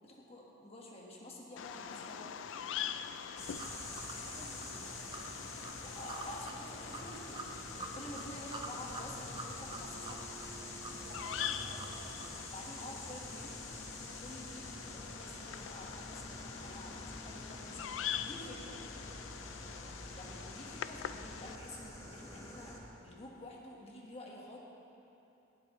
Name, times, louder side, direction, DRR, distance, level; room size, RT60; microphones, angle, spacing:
voice 1, 0.0-2.4 5.8-7.4 7.7-10.2 12.5-13.6 14.2-17.9 18.2-18.8 20.1-22.7 23.0-24.6, left 1 dB, 35° left, -2 dB, 1.5 m, -49 dB
Bird vocalization bird call bird song, 1.6-21.6, left 9 dB, 90° left, 0.4 m, -44 dB
sound 1, 2.4-12.4, right 2 dB, 25° right, 0.7 m, -48 dB
sound 2, 3.4-22.8, left 1 dB, 15° left, 1.2 m, -47 dB
voice 2, 3.4-5.5 8.4-8.5 10.9-12.4 18.7-18.8, right 1 dB, 45° right, -2 dB, 1.4 m, -55 dB
21.0 x 8.1 x 3.1 m, 3.0 s
head